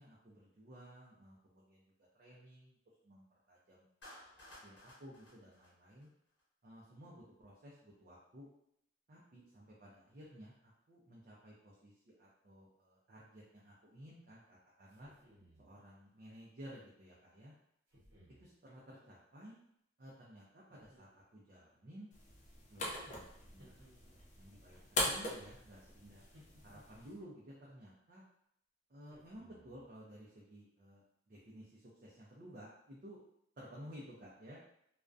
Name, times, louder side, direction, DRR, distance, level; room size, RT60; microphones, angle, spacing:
voice 1, 0.0-1.8 2.1-2.8 3.0-6.1 6.6-8.5 9.1-15.1 15.6-17.5 18.4-19.6 20.0-22.1 22.7-23.8 24.0-26.2 26.6-28.2 28.9-33.2 33.6-34.6, equal, 45° right, -5 dB, 0.4 m, -55 dB
Clapping, 4.0-6.4, left 1 dB, 75° left, 1.0 m, -57 dB
sound 1, 14.9-15.7 17.9-18.5 20.7-21.5 23.6-24.5 26.3-27.3 29.1-29.9, equal, 85° right, 0.9 m, -64 dB
sound 2, 22.1-27.1, left 1 dB, 40° left, 0.4 m, -42 dB
2.3 x 2.1 x 2.5 m, 0.73 s
head